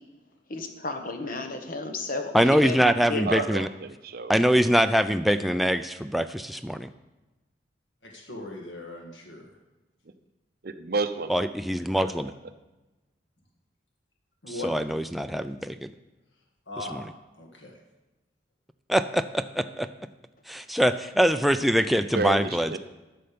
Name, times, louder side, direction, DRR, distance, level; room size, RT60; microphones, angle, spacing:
voice 1, 0.5-2.8 3.1-3.3, left 3 dB, 50° left, 6 dB, 1.2 m, -33 dB
voice 2, 2.3-3.7 4.3-6.9 11.3-12.3 14.6-15.9 16.9-17.0 18.9-19.9 20.5-22.8, equal, ahead, 8 dB, 0.3 m, -23 dB
voice 3, 3.3-4.4 10.6-11.3 12.0-12.1 21.9-22.8, right 3 dB, 55° right, 8 dB, 0.7 m, -30 dB
voice 4, 8.0-9.5 14.4-14.7 16.7-17.0 17.3-17.7, left 2 dB, 90° left, 0 dB, 1.8 m, -39 dB
12.0 x 6.6 x 5.2 m, 1.1 s
head